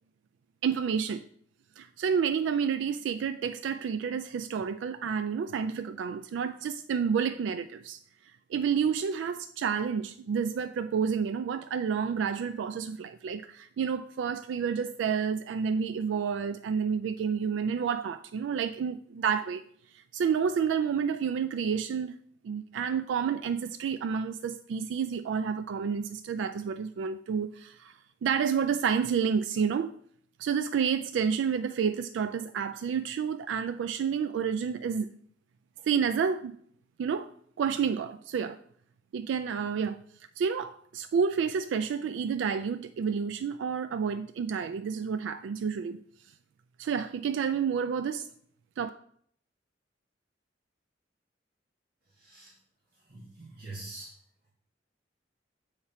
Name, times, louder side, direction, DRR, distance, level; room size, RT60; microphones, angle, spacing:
voice 1, 0.6-1.2 1.8-8.0 8.5-19.6 19.9-22.2 22.4-29.9 30.4-35.1 35.8-36.6 37.0-37.3 37.6-38.6 39.1-40.0 40.4-46.0 46.8-48.3 48.8-48.9, right 6 dB, 80° right, 11 dB, 0.3 m, -30 dB
voice 2, 52.1-52.5 53.0-54.1, right 2 dB, 55° right, -7 dB, 2.0 m, -44 dB
7.2 x 4.9 x 4.2 m, 0.63 s
head